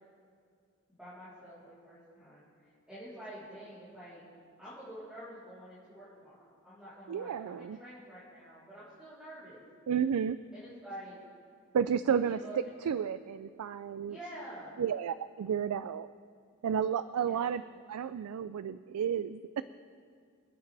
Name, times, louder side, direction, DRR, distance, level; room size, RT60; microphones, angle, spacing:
voice 1, 1.0-4.2 4.6-9.6 10.5-11.1 11.9-12.7 14.1-14.8 17.1-17.5, right 1 dB, 5° right, -14 dB, 3.5 m, -48 dB
voice 2, 7.1-7.8 9.9-10.4 11.7-12.4 12.9-14.2 14.8-16.1 16.6-17.6 17.9-19.6, right 8 dB, 85° right, 14 dB, 0.3 m, -32 dB
26.0 x 9.0 x 3.4 m, 2.2 s
head